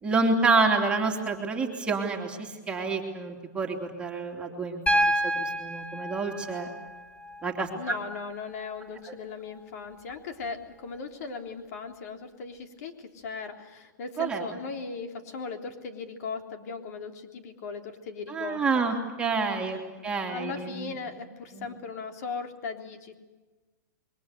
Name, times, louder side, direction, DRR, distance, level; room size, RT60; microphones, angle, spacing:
voice 1, 0.0-6.7 7.4-7.7 14.2-14.4 18.3-20.9 21.6-21.7, right 4 dB, 10° right, 1 dB, 2.9 m, -28 dB
Piano, 4.9-8.9 10.4-10.5, equal, 10° left, 4.0 m, -30 dB
voice 2, 7.7-18.8 19.6-19.7 20.0-23.1, left 4 dB, 55° left, 5 dB, 3.6 m, -38 dB
28.0 x 23.5 x 6.7 m, 1.2 s
hypercardioid pair, 150°, 10 cm